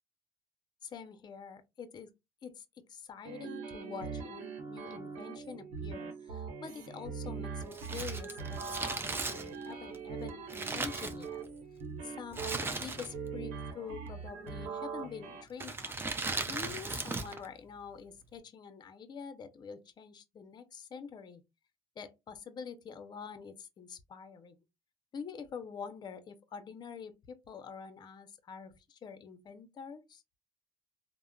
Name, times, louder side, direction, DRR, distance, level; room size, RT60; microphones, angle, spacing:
voice 1, 0.8-2.1 2.4-11.4 12.0-15.9 16.5-21.4 22.0-24.6 25.1-30.2, left 6 dB, 45° left, 0.5 m, -46 dB
sound 1, 3.2-15.4, right 5 dB, 90° right, 0.8 m, -42 dB
Crumpling crinkling, 7.7-11.7 12.3-13.4 13.6-13.7 14.5-14.9 15.5-17.5 17.7-17.8, right 3 dB, 20° right, 0.5 m, -37 dB
3.5 x 2.0 x 2.2 m
cardioid pair, 90°, 11 cm